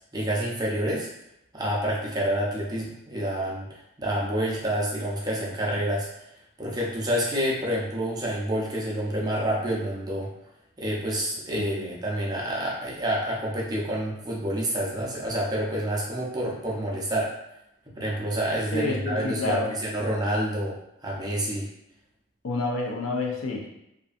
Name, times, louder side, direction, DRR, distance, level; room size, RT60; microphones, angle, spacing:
voice 1, 0.1-1.1 1.5-6.1 6.6-10.3 10.8-17.3 18.0-21.7, right 1 dB, 20° right, -4 dB, 0.5 m, -28 dB
voice 2, 11.5-11.9 18.7-19.7 22.4-23.7, left 3 dB, 75° left, 0 dB, 0.5 m, -29 dB
2.6 x 2.5 x 2.4 m, 0.82 s
head